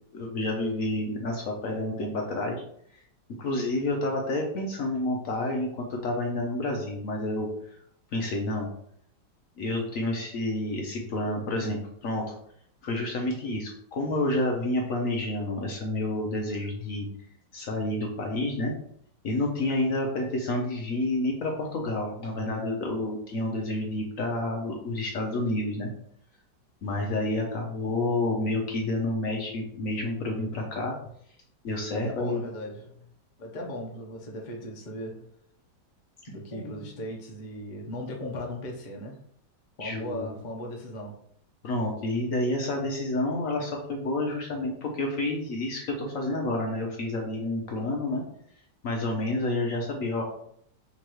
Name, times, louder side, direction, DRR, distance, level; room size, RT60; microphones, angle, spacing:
voice 1, 0.1-2.6 3.4-7.5 8.1-8.7 9.6-12.3 12.8-17.1 17.5-18.7 19.2-25.9 26.8-30.9 31.6-32.4 36.5-36.9 39.8-40.3 41.6-48.2 48.8-50.2, left 1 dB, 60° left, 0 dB, 0.9 m, -29 dB
voice 2, 31.9-33.1 33.4-35.3 36.3-39.2 39.8-41.1, left 1 dB, 45° left, -1 dB, 0.6 m, -37 dB
5.3 x 3.0 x 3.0 m, 0.68 s
omnidirectional pair, 1.9 m